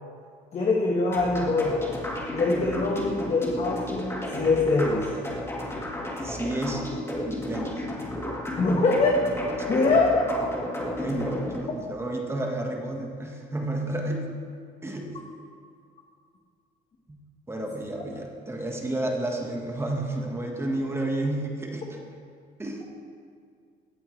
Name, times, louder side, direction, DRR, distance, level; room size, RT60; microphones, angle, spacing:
voice 1, 0.5-2.0 2.3-5.1 8.6-9.2 9.7-10.3, left 3 dB, 40° left, -2 dB, 1.5 m, -23 dB
sound 1, 1.1-11.6, left 1 dB, 15° left, 2.0 m, -33 dB
voice 2, 6.2-6.8 7.2-7.8 11.0-14.3 14.8-15.1 17.1-17.2 17.5-22.0 22.6-22.8, right 1 dB, 15° right, 0 dB, 1.6 m, -31 dB
16.0 x 8.4 x 3.4 m, 2.3 s
cardioid pair, 110°, 17 cm